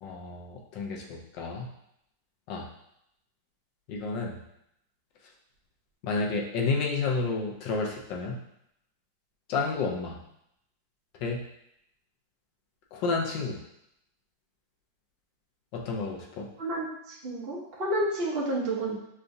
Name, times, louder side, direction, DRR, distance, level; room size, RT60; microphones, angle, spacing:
voice 1, 0.0-1.7 2.5-2.7 3.9-4.4 6.0-8.4 9.5-10.1 11.2-11.4 12.9-13.6 15.7-16.5, left 4 dB, 70° left, -1 dB, 1.2 m, -30 dB
voice 2, 16.6-18.9, right 1 dB, 50° right, -5 dB, 0.7 m, -30 dB
6.7 x 2.3 x 2.6 m, 0.78 s
omnidirectional pair, 2.3 m